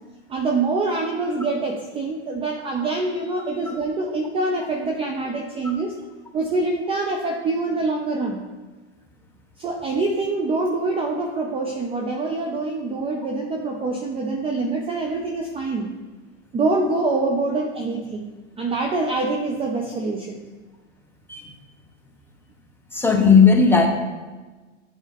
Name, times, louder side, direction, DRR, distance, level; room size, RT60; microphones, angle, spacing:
voice 1, 0.3-5.9 6.3-8.4 9.6-15.9 16.5-18.3 18.6-20.4, right 3 dB, 15° right, 2 dB, 0.5 m, -25 dB
voice 2, 22.9-23.9, left 5 dB, 5° left, 2 dB, 0.8 m, -15 dB
8.0 x 4.3 x 4.1 m, 1.3 s
hypercardioid pair, 115°, 36 cm